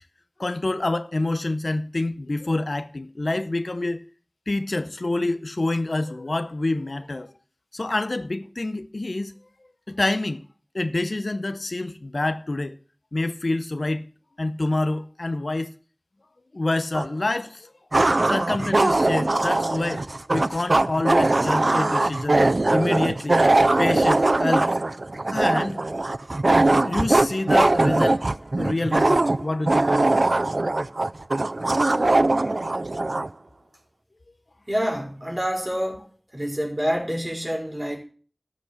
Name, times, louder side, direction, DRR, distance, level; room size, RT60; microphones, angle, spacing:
voice 1, 0.4-4.0 4.5-7.3 7.7-9.3 9.9-10.4 10.7-12.7 13.1-14.0 14.4-15.7 16.5-17.7 18.2-20.0 20.3-22.4 22.7-23.4 23.8-24.8 25.3-25.8 26.8-28.3 28.6-30.5, left 2 dB, 85° left, 0.7 m, -27 dB
sound 1, 16.9-17.1 17.9-33.3, right 2 dB, 75° right, 0.4 m, -21 dB
voice 2, 34.7-36.0 36.3-38.0, equal, 25° right, 4.7 m, -27 dB
12.5 x 5.2 x 8.0 m
wide cardioid pair, 40°, 0 cm